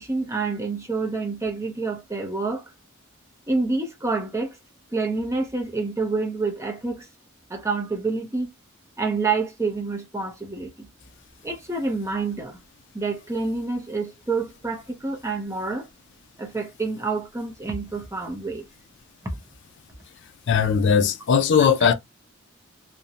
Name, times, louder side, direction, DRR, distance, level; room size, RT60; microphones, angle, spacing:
voice 1, 0.0-2.6 3.5-4.6 4.9-7.1 7.5-8.5 9.0-10.9 11.4-12.6 12.9-15.9 16.4-18.6 19.2-19.4 21.8-21.9, right 3 dB, 15° right, 0.6 m, -28 dB
voice 2, 20.5-21.9, left 6 dB, 60° left, 0.4 m, -19 dB
2.5 x 2.1 x 2.7 m
head